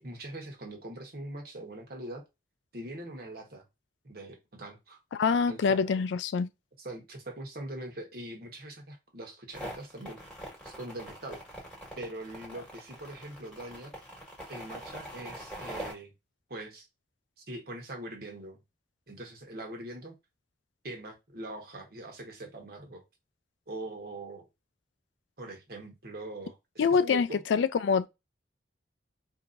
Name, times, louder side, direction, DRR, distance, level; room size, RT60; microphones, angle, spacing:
voice 1, 0.0-2.2 2.7-3.6 4.0-5.0 5.5-5.9 6.8-10.2 10.6-11.4 12.0-13.9 14.5-16.1 16.5-16.9 17.5-18.6 19.1-20.1 20.8-23.0 23.7-24.5 25.4-27.4, right 1 dB, 55° right, 1.3 m, -42 dB
voice 2, 5.1-6.5 26.8-28.1, left 5 dB, 85° left, 0.4 m, -25 dB
sound 1, 9.5-15.9, right 1 dB, 5° left, 1.5 m, -43 dB
4.4 x 2.8 x 2.5 m
head